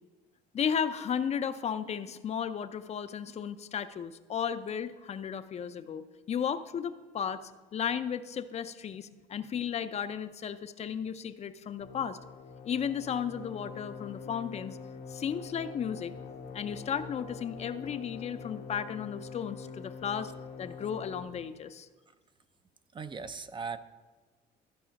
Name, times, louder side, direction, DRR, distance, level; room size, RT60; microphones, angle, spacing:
voice 1, 0.5-12.2 12.6-14.8 15.1-16.1 16.5-20.3 20.6-21.9, left 8 dB, 40° left, 11 dB, 0.5 m, -34 dB
sound 1, 11.8-21.2, left 5 dB, 85° left, 1.2 m, -44 dB
voice 2, 22.9-23.8, right 5 dB, 30° right, 11 dB, 0.5 m, -38 dB
13.5 x 4.9 x 5.8 m, 1.3 s
cardioid pair, 110°, 17 cm